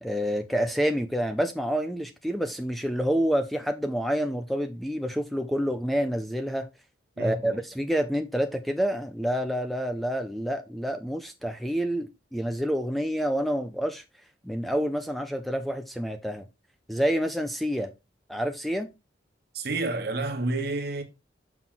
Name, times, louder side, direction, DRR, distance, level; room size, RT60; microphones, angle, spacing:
voice 1, 0.0-6.7 7.2-14.0 14.4-16.5 16.9-17.9 18.3-18.9, equal, ahead, 0.5 m, -28 dB
voice 2, 7.2-7.6 19.5-21.0, right 2 dB, 55° right, 1.3 m, -29 dB
6.0 x 6.0 x 3.8 m
head